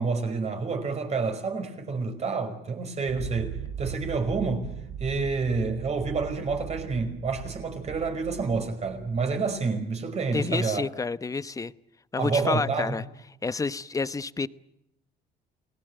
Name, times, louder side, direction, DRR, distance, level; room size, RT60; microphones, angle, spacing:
voice 1, 0.0-4.7 5.0-10.8 12.2-13.0, right 4 dB, 40° right, 5.2 m, -28 dB
sound 1, 3.1-9.6, right 10 dB, 70° right, 1.3 m, -39 dB
voice 2, 10.3-11.7 12.1-13.0 13.4-14.5, left 4 dB, 20° left, 0.9 m, -29 dB
29.5 x 19.0 x 8.0 m
cardioid pair, 110°, 17 cm